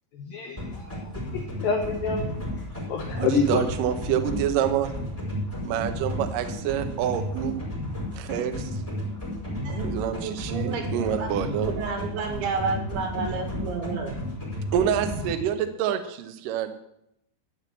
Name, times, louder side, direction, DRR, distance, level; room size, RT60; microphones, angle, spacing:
voice 1, 0.2-2.3 2.9-3.6, left 6 dB, 70° left, 3 dB, 2.3 m, -28 dB
sound 1, 0.6-15.3, left 1 dB, 10° left, 3.7 m, -33 dB
voice 2, 3.2-4.9 5.6-7.6 8.1-8.7 9.7-11.7 14.7-16.7, right 9 dB, 70° right, 8 dB, 2.1 m, -27 dB
voice 3, 9.6-11.3 11.7-14.1, right 5 dB, 90° right, 4 dB, 4.3 m, -31 dB
12.5 x 6.1 x 8.6 m, 0.77 s
omnidirectional pair, 5.1 m